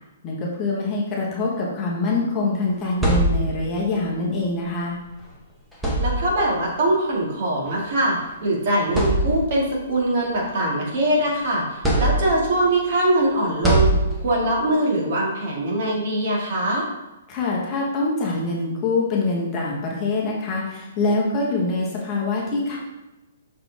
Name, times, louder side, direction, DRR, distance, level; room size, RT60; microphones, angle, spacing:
voice 1, 0.2-5.0 17.3-22.8, left 3 dB, 20° left, -4 dB, 1.3 m, -24 dB
sound 1, 2.7-3.8 5.1-5.2 5.7-6.6 7.7-7.8 8.4-8.5 8.9-9.7 10.2-11.3 11.8-12.6 13.6-14.5, right 2 dB, 5° right, 1.1 m, -22 dB
voice 2, 6.0-13.9 14.2-16.9, right 1 dB, 45° right, -3 dB, 2.1 m, -22 dB
6.0 x 5.0 x 3.5 m, 1.0 s
hypercardioid pair, 160°, 0 cm